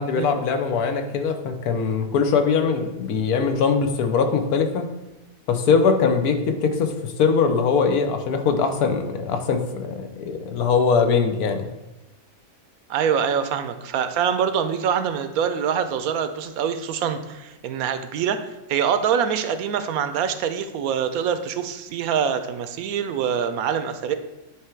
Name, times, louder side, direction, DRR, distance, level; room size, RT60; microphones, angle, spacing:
voice 1, 0.0-4.8 5.5-11.7, left 5 dB, 85° left, 6 dB, 1.3 m, -21 dB
voice 2, 12.9-18.4 18.7-24.1, right 7 dB, 80° right, 9 dB, 1.0 m, -24 dB
9.0 x 3.5 x 4.4 m, 1.0 s
omnidirectional pair, 1.5 m